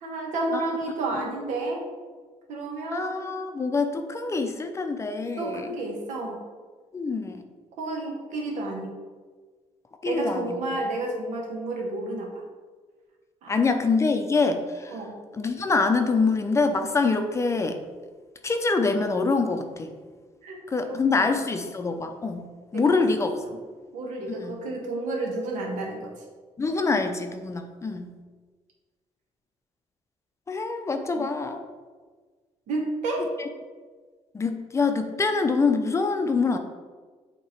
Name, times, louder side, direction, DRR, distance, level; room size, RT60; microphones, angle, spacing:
voice 1, 0.0-1.8 2.5-3.1 5.4-6.4 7.8-9.0 10.0-12.4 13.4-13.6 14.9-15.2 20.4-21.3 22.7-23.0 23.9-26.1 31.1-31.3 32.7-33.3, right 2 dB, 85° right, 0 dB, 1.4 m, -31 dB
voice 2, 2.9-5.7 6.9-7.4 10.0-10.6 13.5-15.0 15.3-17.8 18.4-19.9 20.7-22.5 22.7-23.4 24.4-24.6 26.6-28.1 30.5-31.6 33.4-33.5 34.3-36.6, left 4 dB, 25° left, 6 dB, 0.5 m, -25 dB
8.3 x 2.9 x 4.5 m, 1.4 s
cardioid pair, 135°, 12 cm